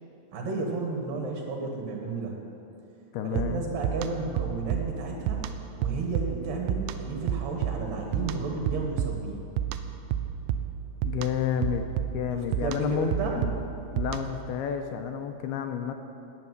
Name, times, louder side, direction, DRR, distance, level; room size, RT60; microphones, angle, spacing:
voice 1, 0.3-2.4 3.2-5.4 5.8-9.4 12.5-13.4, right 3 dB, 65° right, 1 dB, 3.4 m, -32 dB
voice 2, 3.1-3.6 11.0-11.9 12.1-15.9, left 8 dB, 85° left, 5 dB, 2.4 m, -31 dB
sound 1, 3.4-14.5, right 10 dB, 85° right, 3.0 m, -32 dB
18.5 x 7.1 x 9.3 m, 2.7 s
omnidirectional pair, 5.3 m